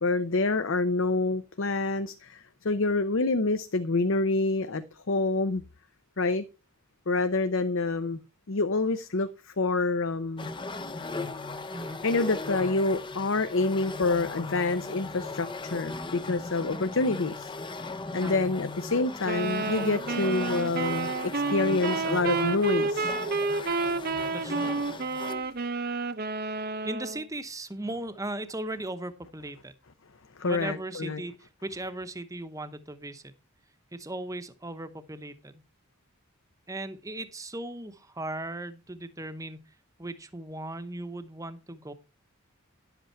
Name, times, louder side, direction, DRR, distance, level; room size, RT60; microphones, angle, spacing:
voice 1, 0.0-5.6 6.2-6.4 7.1-8.2 8.5-10.5 12.0-17.5 18.1-23.1 30.4-31.2, left 3 dB, 60° left, 0.7 m, -27 dB
sound 1, 10.4-25.5, left 3 dB, 20° left, 0.6 m, -38 dB
voice 2, 11.7-12.0 18.2-18.5 24.3-24.8 26.8-29.7 30.4-33.2 33.9-35.6 36.7-39.6 40.0-41.9, right 2 dB, 15° right, 0.9 m, -37 dB
sound 2, 19.3-27.3, right 3 dB, 45° right, 0.7 m, -30 dB
11.0 x 8.1 x 4.5 m
head